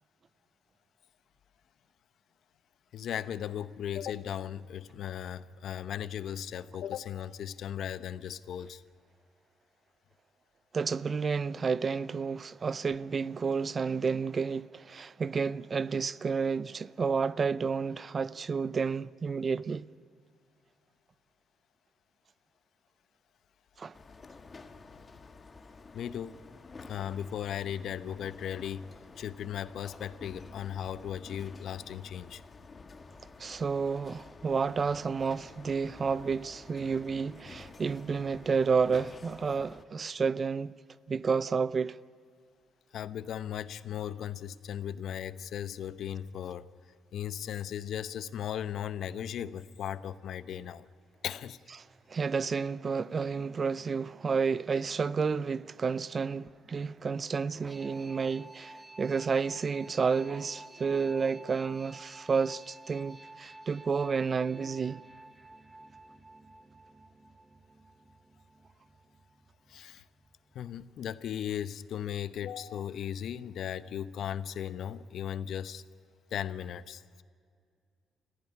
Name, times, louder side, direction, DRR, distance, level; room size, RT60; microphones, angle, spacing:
voice 1, 2.9-8.8 24.9-25.2 25.9-26.4 26.9-28.9 29.2-32.4 42.9-46.7 47.1-50.9 51.2-51.6 69.7-70.0 70.5-75.8 76.3-77.2, left 9 dB, 70° left, 0.8 m, -37 dB
voice 2, 10.7-19.9 23.8-24.0 33.4-40.7 41.1-42.0 52.1-65.0, right 5 dB, 40° right, 0.6 m, -30 dB
sound 1, 23.9-39.8, left 4 dB, 35° left, 1.5 m, -51 dB
sound 2, 56.1-70.8, right 1 dB, 15° right, 1.1 m, -53 dB
28.5 x 15.0 x 9.9 m
cardioid pair, 90°, 0 cm